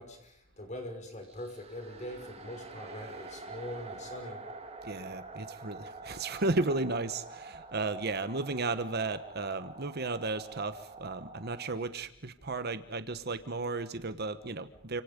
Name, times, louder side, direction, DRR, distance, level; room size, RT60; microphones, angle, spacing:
voice 1, 0.0-4.4, left 1 dB, 35° left, 4 dB, 5.8 m, -43 dB
sound 1, 1.2-11.7, right 3 dB, 30° right, 2.9 m, -47 dB
voice 2, 4.8-15.0, right 3 dB, 55° right, 11 dB, 1.2 m, -34 dB
29.5 x 26.5 x 5.3 m, 0.65 s
head